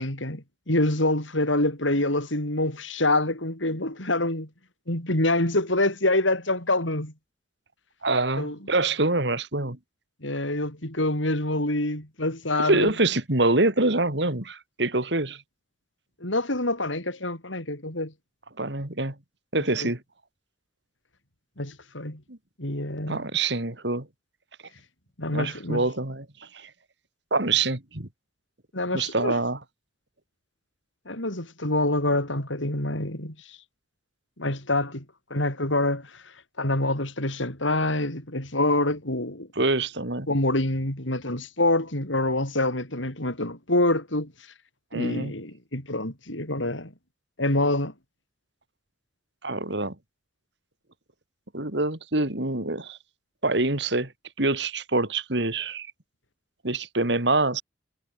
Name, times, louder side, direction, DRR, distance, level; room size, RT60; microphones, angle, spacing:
voice 1, 0.0-4.5 4.9-7.1 8.4-8.6 10.2-12.9 16.2-18.1 19.8-19.9 21.6-22.2 22.6-23.2 25.2-25.8 28.7-29.3 31.1-33.6 34.4-35.0 35.3-36.2 36.6-39.5 40.3-44.3 44.9-46.9 47.4-47.9, left 2 dB, 80° left, 7.5 m, -26 dB
voice 2, 8.0-9.8 12.6-15.4 18.6-19.1 19.5-20.0 22.3-22.4 23.1-24.1 25.3-26.3 26.5-26.7 27.3-28.1 28.9-29.6 39.6-40.3 44.9-45.3 49.4-49.9 51.5-53.0 53.4-54.1 54.4-55.9 56.6-57.6, right 2 dB, 60° right, 2.9 m, -25 dB
head